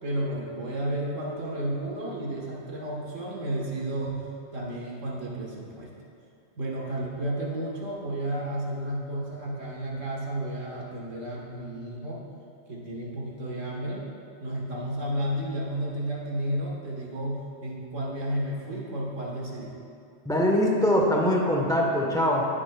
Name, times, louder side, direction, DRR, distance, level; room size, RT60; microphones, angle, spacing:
voice 1, 0.0-4.2 4.5-5.9 6.6-12.2 12.7-14.0 14.4-19.7, right 1 dB, 75° right, -3 dB, 1.7 m, -32 dB
voice 2, 20.2-22.5, equal, 5° left, -1 dB, 1.0 m, -23 dB
16.0 x 8.5 x 2.3 m, 2.4 s
omnidirectional pair, 1.3 m